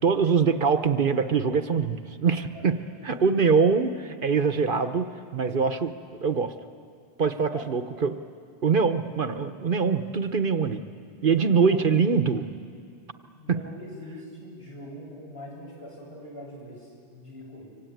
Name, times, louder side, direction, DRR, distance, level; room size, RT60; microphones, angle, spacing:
voice 1, 0.0-2.8 3.0-5.1 5.3-5.9 6.2-6.5 7.2-8.2 8.6-10.8 11.2-12.4 13.5-13.6, right 5 dB, 55° right, 9 dB, 1.1 m, -23 dB
voice 2, 3.0-3.4 7.3-7.7 11.3-11.9 13.3-17.7, left 1 dB, 70° left, -3 dB, 8.5 m, -43 dB
25.0 x 24.5 x 9.2 m, 2.3 s
omnidirectional pair, 1.1 m